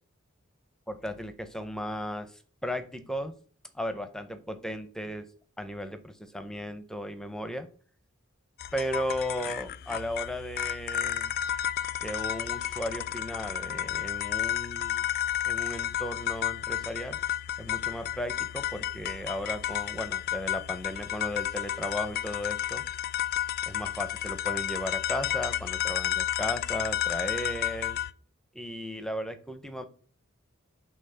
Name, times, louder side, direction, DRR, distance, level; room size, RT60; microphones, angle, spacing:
voice 1, 0.9-2.3 2.6-3.3 3.7-5.2 5.6-7.7 8.7-11.4 12.0-15.1 15.4-17.2 17.6-22.9 23.7-28.0 28.5-29.9, equal, 5° left, 9 dB, 0.6 m, -35 dB
sound 1, 8.6-28.1, left 11 dB, 45° left, 0.3 m, -32 dB
5.5 x 3.5 x 5.6 m, 0.43 s
head